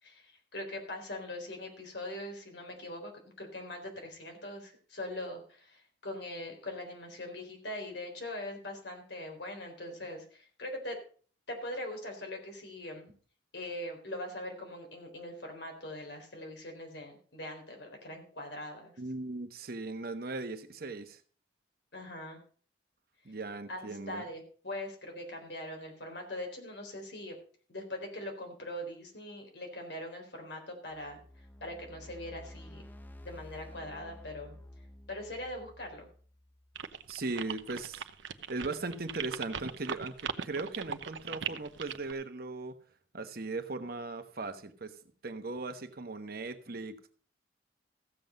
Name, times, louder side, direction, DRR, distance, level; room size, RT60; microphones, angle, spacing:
voice 1, 0.0-3.1 3.4-11.0 11.5-13.1 13.5-18.9 21.9-22.4 23.7-27.4 27.7-31.2 31.6-32.8 33.2-34.6 35.1-36.1, left 1 dB, 65° left, 3 dB, 4.0 m, -42 dB
voice 2, 19.0-21.2 23.2-24.2 37.1-38.0 38.5-42.8 43.1-45.0 45.2-47.1, right 3 dB, 55° right, 8 dB, 1.1 m, -38 dB
sound 1, 30.9-37.1, left 1 dB, 10° left, 0.6 m, -51 dB
sound 2, 36.8-42.1, right 7 dB, 85° right, 0.8 m, -39 dB
15.0 x 7.8 x 5.2 m, 0.42 s
head